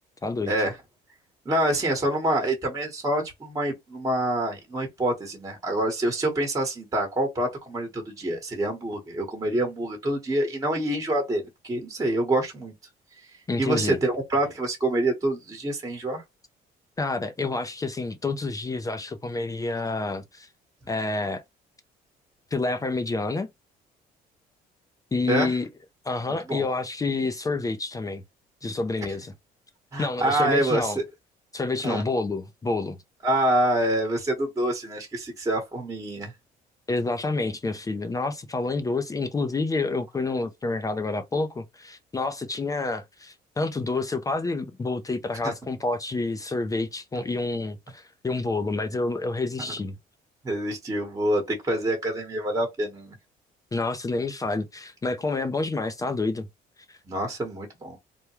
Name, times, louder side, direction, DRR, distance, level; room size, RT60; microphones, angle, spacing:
voice 1, 0.2-0.5 13.5-14.0 17.0-20.5 20.9-21.4 22.5-23.5 25.1-25.7 26.0-28.2 28.6-29.3 30.0-31.0 31.5-33.0 36.9-49.9 53.7-56.5 56.9-57.0, left 3 dB, 20° left, 0.5 m, -28 dB
voice 2, 1.4-12.7 13.6-16.2 25.3-25.5 26.5-26.6 29.9-31.0 31.8-32.0 33.2-36.3 45.4-45.5 50.4-53.1 57.1-58.0, right 1 dB, 20° right, 1.2 m, -26 dB
3.4 x 2.2 x 2.9 m
cardioid pair, 110°, 17 cm